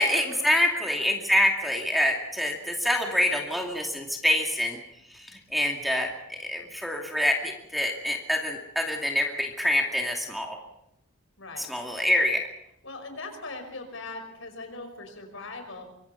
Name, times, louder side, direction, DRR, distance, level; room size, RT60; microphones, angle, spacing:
voice 1, 0.0-4.8 5.1-10.6 11.6-12.4, left 1 dB, ahead, 1 dB, 2.5 m, -26 dB
voice 2, 11.4-11.7 12.8-15.8, left 3 dB, 65° left, 5 dB, 5.5 m, -40 dB
25.0 x 24.5 x 5.8 m, 0.77 s
head